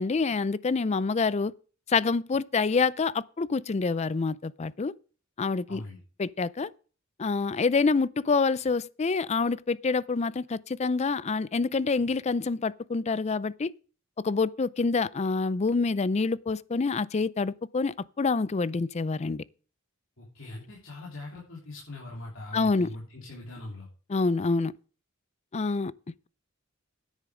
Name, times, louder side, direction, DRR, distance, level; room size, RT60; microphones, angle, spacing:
voice 1, 0.0-1.5 1.9-4.9 5.4-5.8 6.2-6.7 7.2-13.7 14.2-19.4 22.5-22.9 24.1-24.7 25.5-25.9, left 4 dB, 30° left, 0.4 m, -27 dB
voice 2, 5.7-6.0 20.2-23.9, left 2 dB, 65° left, 3.4 m, -41 dB
10.0 x 8.5 x 6.3 m
head